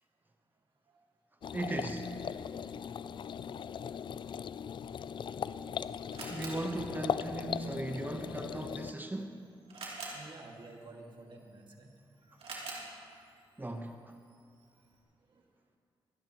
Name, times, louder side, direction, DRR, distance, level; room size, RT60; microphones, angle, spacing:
sound 1, 1.4-8.9, left 7 dB, 55° left, 0.4 m, -39 dB
voice 1, 1.5-2.1 6.3-9.4 13.6-13.9, right 2 dB, 20° right, 5 dB, 1.0 m, -37 dB
Camera, 5.2-15.0, right 3 dB, 75° right, 3.1 m, -50 dB
voice 2, 10.1-12.6 13.6-13.7 15.3-15.5, right 2 dB, 55° right, 0 dB, 2.1 m, -52 dB
25.0 x 10.5 x 3.0 m, 2.3 s
cardioid pair, 60°, 10 cm